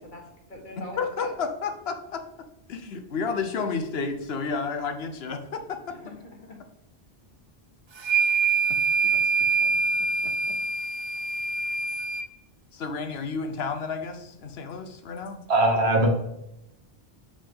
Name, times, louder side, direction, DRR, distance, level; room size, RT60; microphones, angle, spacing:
voice 1, 0.0-1.3 5.9-6.6 8.1-8.4, left 2 dB, 50° left, 0 dB, 1.6 m, -43 dB
voice 2, 1.0-2.2 2.7-5.9 8.7-8.8 9.6-10.5 12.7-15.4, left 5 dB, 70° left, 7 dB, 1.0 m, -32 dB
sound 1, 8.0-12.3, right 4 dB, 45° right, 0.4 m, -25 dB
voice 3, 15.5-16.1, right 1 dB, 80° right, 2 dB, 1.6 m, -20 dB
6.9 x 5.2 x 3.6 m, 0.84 s
omnidirectional pair, 1.1 m